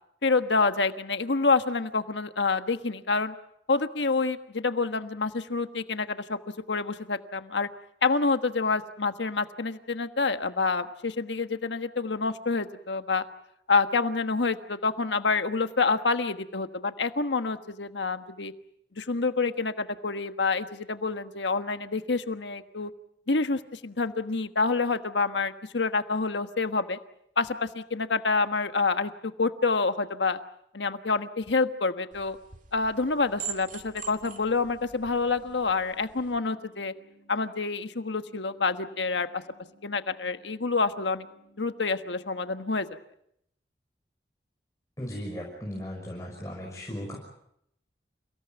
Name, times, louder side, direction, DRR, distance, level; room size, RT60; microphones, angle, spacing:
voice 1, 0.2-3.3 3.7-6.4 6.7-7.7 8.0-13.2 13.7-18.5 19.0-22.9 23.3-27.0 27.4-30.4 30.7-32.4 32.7-36.9 37.3-39.4 39.8-41.3 41.6-42.9, left 4 dB, 85° left, 9 dB, 1.4 m, -27 dB
sound 1, 32.1-36.4, right 7 dB, 45° right, 2.1 m, -43 dB
sound 2, 32.8-42.8, equal, 55° left, 3.9 m, -61 dB
voice 2, 45.0-47.2, equal, 20° left, -2 dB, 6.2 m, -36 dB
29.0 x 17.5 x 9.0 m, 0.75 s
head